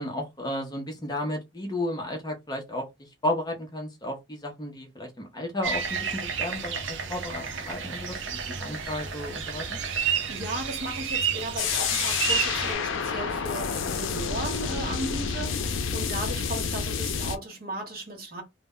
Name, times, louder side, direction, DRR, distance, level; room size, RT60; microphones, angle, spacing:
voice 1, 0.0-2.9 3.2-9.8 16.2-16.3, left 1 dB, 20° left, 0.5 m, -33 dB
sound 1, 5.6-12.7, right 7 dB, 70° right, 0.5 m, -31 dB
voice 2, 9.8-18.4, right 1 dB, 50° right, 0.9 m, -36 dB
sound 2, 11.6-17.4, left 6 dB, 85° left, 0.4 m, -29 dB
2.1 x 2.0 x 3.5 m
head